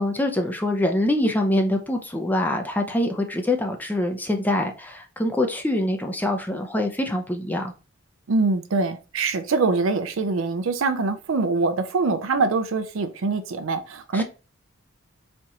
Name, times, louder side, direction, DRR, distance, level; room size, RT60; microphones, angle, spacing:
voice 1, 0.0-7.7 14.1-14.2, left 1 dB, 10° left, 0.5 m, -24 dB
voice 2, 8.3-14.2, right 3 dB, 75° right, 0.5 m, -24 dB
4.2 x 2.9 x 2.4 m
head